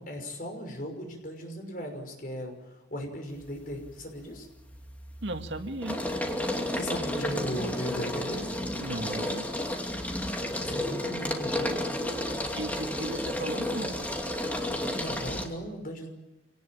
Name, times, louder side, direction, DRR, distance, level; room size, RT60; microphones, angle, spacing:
voice 1, 0.0-4.5 6.7-8.5 10.7-11.8 14.9-16.1, equal, 45° left, 4 dB, 5.9 m, -37 dB
sound 1, 3.4-3.9 4.3-15.5, left 1 dB, 10° left, 2.6 m, -32 dB
voice 2, 5.2-6.0 8.8-9.5 12.5-14.0, right 1 dB, 75° right, 6 dB, 2.2 m, -35 dB
27.0 x 18.5 x 8.8 m, 1.1 s
head